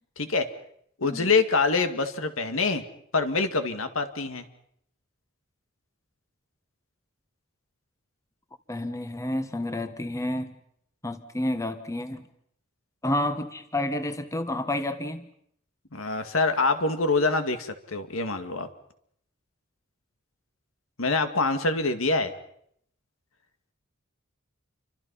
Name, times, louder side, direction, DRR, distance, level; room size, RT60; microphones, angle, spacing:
voice 1, 0.2-0.5 1.0-2.8 3.1-4.4 15.9-18.7 21.0-22.3, left 3 dB, 75° left, 2.2 m, -25 dB
voice 2, 8.7-10.5 11.0-12.3 13.0-15.3, left 1 dB, 15° left, 1.3 m, -30 dB
29.0 x 25.0 x 5.6 m
head